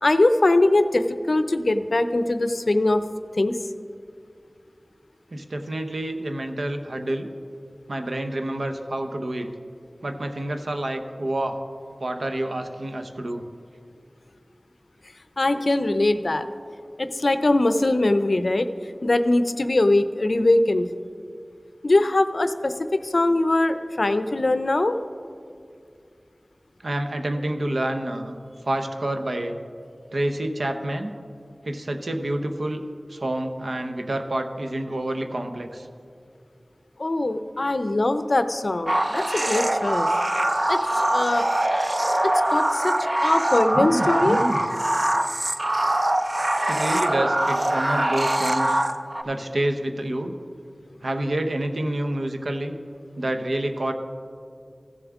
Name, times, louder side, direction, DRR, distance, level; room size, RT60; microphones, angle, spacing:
voice 1, 0.0-3.0 3.3-3.6 15.4-16.4 17.0-18.7 19.0-20.9 21.8-25.0 37.0-40.1 40.7-41.5 42.2-42.9 43.2-44.4, left 2 dB, 65° left, 10 dB, 0.5 m, -21 dB
voice 2, 5.3-7.3 7.9-9.5 10.0-11.6 12.0-13.4 26.8-28.4 28.6-29.5 30.1-31.1 31.6-32.8 33.1-35.9 43.7-44.6 46.7-48.8 49.2-50.3 51.0-52.7 53.2-53.9, right 1 dB, 80° right, 5 dB, 0.7 m, -28 dB
sound 1, 38.9-49.2, right 1 dB, 40° right, 0.5 m, -23 dB
15.5 x 7.1 x 3.5 m, 2.3 s
wide cardioid pair, 50°, 0 cm